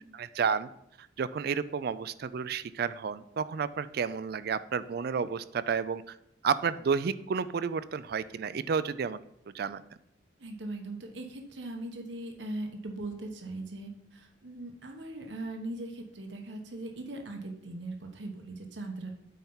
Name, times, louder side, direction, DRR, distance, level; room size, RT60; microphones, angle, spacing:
voice 1, 0.2-0.7 1.0-6.2 6.4-9.2 9.5-9.8, right 6 dB, 55° right, 15 dB, 0.4 m, -31 dB
voice 2, 10.4-19.2, right 2 dB, 75° right, 3 dB, 1.1 m, -40 dB
9.1 x 4.4 x 5.5 m, 0.75 s
head